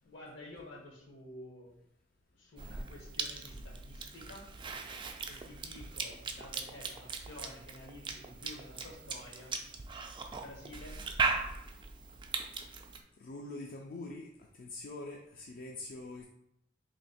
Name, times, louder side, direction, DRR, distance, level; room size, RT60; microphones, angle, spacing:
voice 1, 0.0-1.8 2.3-4.5 5.3-9.6 10.3-11.0, left 1 dB, 75° left, -2 dB, 1.2 m, -51 dB
Cough / Chewing mastication, 2.6-13.0, right 4 dB, 25° right, 0.3 m, -39 dB
voice 2, 13.2-16.2, left 2 dB, 50° left, 0 dB, 0.4 m, -44 dB
3.1 x 2.7 x 4.2 m, 0.76 s
head